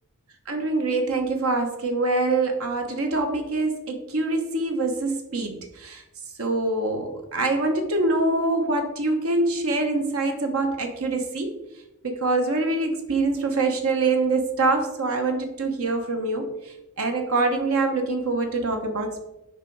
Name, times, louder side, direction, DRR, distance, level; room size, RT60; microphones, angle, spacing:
voice 1, 0.5-6.0 6.4-11.5 12.0-19.3, right 3 dB, 80° right, 4 dB, 1.0 m, -25 dB
6.6 x 4.7 x 4.6 m, 0.93 s
head